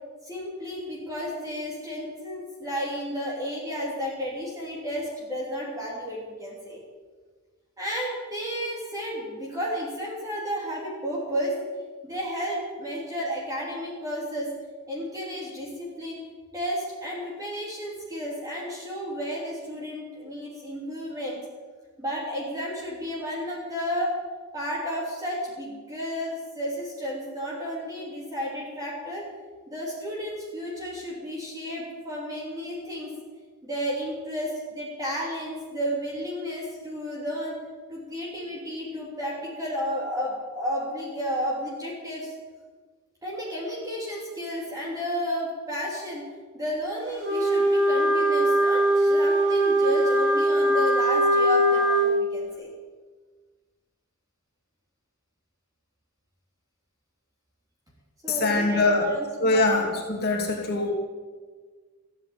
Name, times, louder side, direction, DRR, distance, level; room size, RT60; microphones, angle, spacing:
voice 1, 0.2-6.8 7.8-11.5 12.0-14.5 14.9-16.2 16.5-21.4 22.0-24.1 24.5-29.3 29.7-33.1 33.6-37.6 37.9-42.3 43.2-46.2 46.5-52.7 58.2-59.9, equal, 15° right, -4 dB, 3.2 m, -32 dB
Wind instrument woodwind instrument, 47.2-52.1, right 1 dB, 50° right, 4.5 m, -21 dB
voice 2, 58.3-59.0 59.4-60.9, left 2 dB, 45° left, -1 dB, 2.8 m, -23 dB
14.5 x 9.5 x 8.9 m, 1.5 s
head